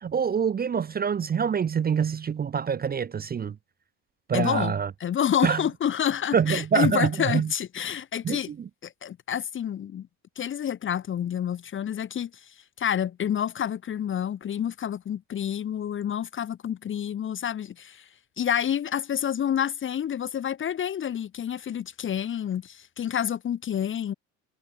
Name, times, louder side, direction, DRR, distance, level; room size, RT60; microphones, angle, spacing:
voice 1, 0.0-3.6 4.3-4.9 5.4-5.6 6.3-7.5 8.2-8.7, right 7 dB, 25° right, 0.6 m, -25 dB
voice 2, 4.3-8.5 8.8-10.1 10.4-12.3 12.8-18.0 18.4-24.1, left 9 dB, 30° left, 0.7 m, -28 dB
supercardioid pair, 95°, 38 cm